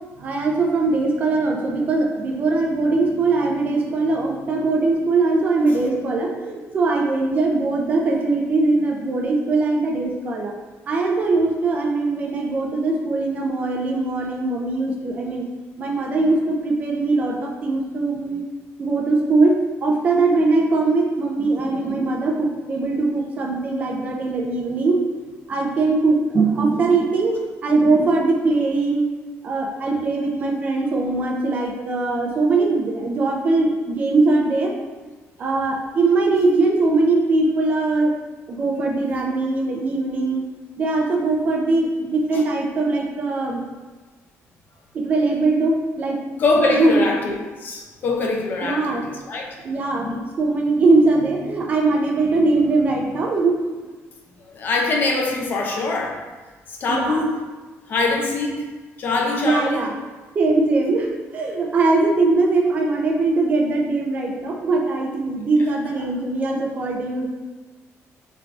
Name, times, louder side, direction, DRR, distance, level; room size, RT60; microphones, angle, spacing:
voice 1, 0.2-10.5 10.9-15.4 15.8-18.4 18.8-25.0 25.5-29.0 29.4-34.7 35.4-38.1 38.5-40.4 40.8-43.6 44.9-46.2 46.7-47.0 48.6-49.0 49.6-50.1 50.4-53.6 56.9-57.2 59.4-59.9 60.3-67.3, right 3 dB, 30° right, 0 dB, 0.4 m, -21 dB
voice 2, 46.4-49.4 49.9-50.2 54.5-56.2 56.7-57.4 57.9-58.7 59.0-59.9 66.0-66.1, left 3 dB, 40° left, 0 dB, 0.5 m, -23 dB
3.2 x 2.2 x 3.8 m, 1.3 s
cardioid pair, 180°, 5 cm